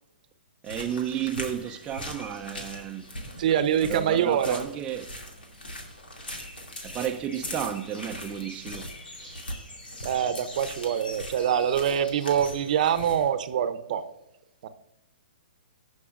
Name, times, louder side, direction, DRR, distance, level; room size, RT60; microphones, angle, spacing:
sound 1, 0.6-13.3, left 1 dB, 85° left, 2.5 m, -40 dB
voice 1, 0.6-3.2 3.8-5.1 6.8-8.9 9.2-9.4, right 9 dB, 20° right, 0.6 m, -32 dB
voice 2, 3.4-4.6 10.0-14.0 14.6-14.7, right 9 dB, 55° right, 0.8 m, -25 dB
18.5 x 6.2 x 2.5 m
hypercardioid pair, 130°, 5 cm